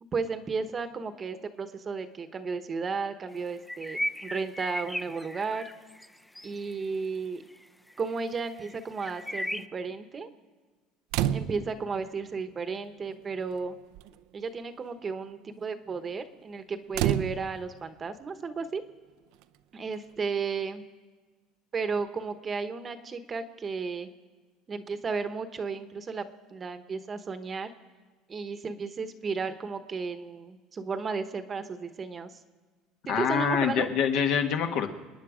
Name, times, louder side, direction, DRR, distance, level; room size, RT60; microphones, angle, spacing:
voice 1, 0.1-5.7 6.4-7.4 8.0-10.3 11.3-13.8 14.3-18.8 19.7-20.8 21.7-24.1 24.7-26.2 26.5-27.7 28.3-32.4 33.1-33.9, right 5 dB, 25° right, 10 dB, 1.0 m, -34 dB
sound 1, 3.6-6.1 6.3-6.8 7.5-7.6 7.9-8.1 8.6-9.7, equal, 5° left, 0.5 m, -35 dB
sound 2, 11.1-11.8 12.9-13.0 13.3-13.7 13.9-14.2 16.9-17.8 19.4-19.5, right 12 dB, 75° right, 0.5 m, -29 dB
voice 2, 33.1-34.9, left 7 dB, 65° left, 6 dB, 1.4 m, -25 dB
29.0 x 9.9 x 5.0 m, 1.4 s
cardioid pair, 140°, 0 cm